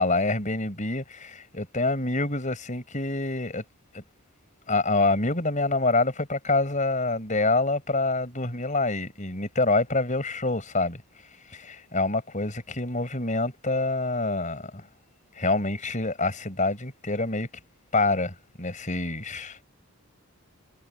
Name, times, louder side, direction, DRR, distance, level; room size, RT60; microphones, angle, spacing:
voice 1, 0.0-3.6 3.9-4.0 4.7-11.0 11.5-14.8 15.4-17.5 17.9-19.6, left 2 dB, 35° left, 5.5 m, -26 dB
head